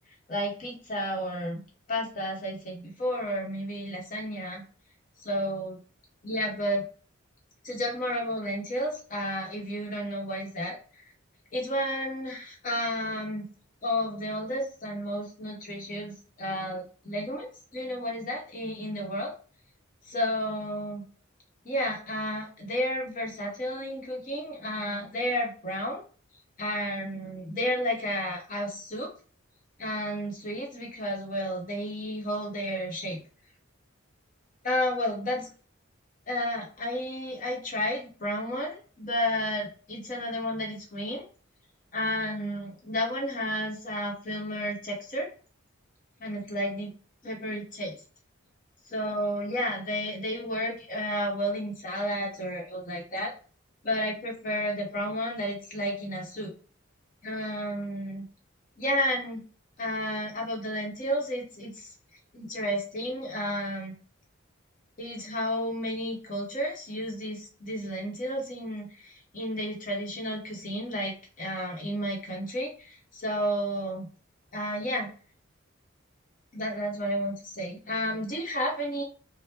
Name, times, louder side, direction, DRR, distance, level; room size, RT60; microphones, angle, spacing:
voice 1, 0.3-1.6 1.9-4.6 5.2-5.8 6.2-6.8 7.6-10.8 11.5-13.4 13.8-19.3 20.1-21.0 21.6-26.0 26.6-29.1 29.8-33.2 34.6-35.5 36.3-41.2 41.9-45.3 46.2-46.9 47.2-48.0 48.9-53.3 53.8-56.5 57.2-58.2 58.8-59.4 59.8-61.9 62.3-63.9 65.0-74.1 74.5-75.1 76.5-79.0, equal, 40° left, 0 dB, 0.9 m, -32 dB
2.8 x 2.0 x 3.4 m, 0.39 s
head